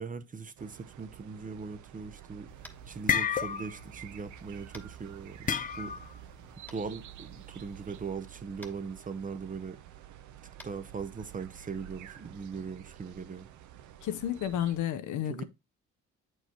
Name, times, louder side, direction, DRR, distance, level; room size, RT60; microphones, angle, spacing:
voice 1, 0.0-2.5 2.9-5.9 6.7-9.8 10.6-13.5 15.3-15.4, right 5 dB, 25° right, 0.6 m, -40 dB
sound 1, 0.6-14.8, right 11 dB, 75° right, 0.6 m, -50 dB
sound 2, 2.5-4.5 5.5-6.2, left 7 dB, 30° left, 0.4 m, -30 dB
Tap, 2.6-2.9 4.7-4.9 6.7-6.8 8.6-8.7 10.5-10.7, left 1 dB, 5° left, 1.1 m, -49 dB
voice 2, 14.0-15.4, left 11 dB, 80° left, 0.7 m, -31 dB
7.9 x 4.6 x 2.9 m
cardioid pair, 90°, 30 cm